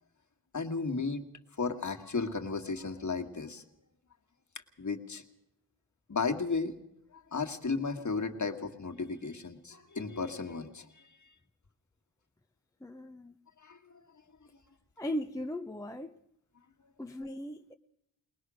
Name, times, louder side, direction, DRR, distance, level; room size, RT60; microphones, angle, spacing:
voice 1, 0.5-1.2 1.6-3.6 4.8-5.2 6.1-6.7 7.3-10.9 13.6-13.8, left 4 dB, 40° left, 1.9 m, -34 dB
voice 2, 12.8-13.4 15.0-16.2 17.0-17.7, left 1 dB, 5° left, 0.7 m, -38 dB
22.0 x 19.5 x 6.3 m
wide cardioid pair, 95°, 45 cm